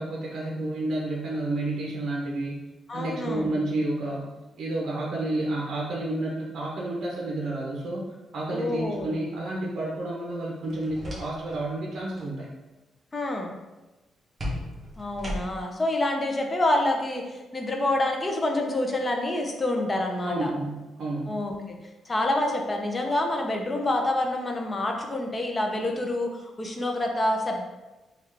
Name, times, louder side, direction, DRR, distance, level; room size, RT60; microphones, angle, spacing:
voice 1, 0.0-2.7 2.9-8.0 8.3-12.5 20.2-21.3, right 2 dB, 65° right, -3 dB, 0.6 m, -30 dB
voice 2, 2.9-3.6 8.5-9.1 13.1-13.5 15.0-20.5 21.3-21.8 22.1-27.6, left 1 dB, 25° left, 2 dB, 0.5 m, -27 dB
sound 1, 10.6-11.6 11.9-12.3 14.4-15.8, equal, 25° right, 0.8 m, -36 dB
3.5 x 2.3 x 3.2 m, 1.1 s
cardioid pair, 125°, 0 cm